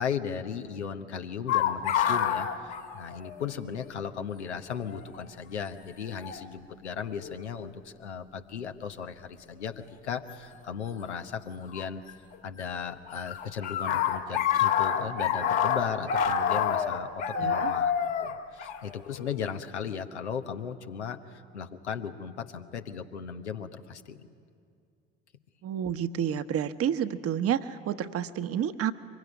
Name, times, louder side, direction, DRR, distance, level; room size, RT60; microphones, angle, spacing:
voice 1, 0.0-12.0 12.4-17.9 18.2-24.3, left 7 dB, 85° left, 7 dB, 1.1 m, -36 dB
sound 1, 1.5-3.6 3.8-3.9 4.9-5.2 6.2-6.4 7.2-7.6 10.3-10.4 11.7-12.6 12.9-19.4, left 8 dB, 50° left, 2.1 m, -28 dB
voice 2, 17.3-17.7 25.6-28.9, right 9 dB, 45° right, 10 dB, 1.1 m, -30 dB
24.5 x 22.0 x 9.7 m, 2.4 s
figure-of-eight pair, 65°, 33 cm